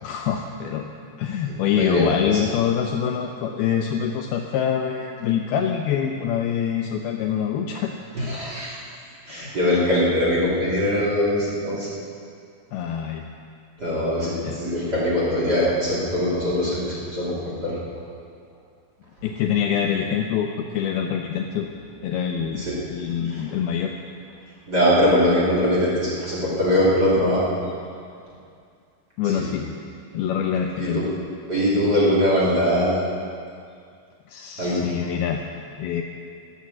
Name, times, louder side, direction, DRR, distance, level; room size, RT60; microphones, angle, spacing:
voice 1, 0.0-0.9 1.2-7.9 9.9-10.0 12.7-13.2 14.4-14.6 19.2-21.7 22.0-22.6 22.9-23.9 29.2-29.7 30.1-31.0 34.3-35.4 35.8-36.0, left 8 dB, 80° left, 3 dB, 2.3 m, -25 dB
voice 2, 1.8-2.4 8.1-8.7 9.3-11.9 13.8-17.7 22.5-22.8 23.3-23.4 24.7-27.4 29.2-29.5 30.8-31.0 31.5-33.0 34.6-34.9, equal, 25° right, -7 dB, 2.8 m, -22 dB
13.0 x 11.5 x 7.3 m, 2.3 s
omnidirectional pair, 5.0 m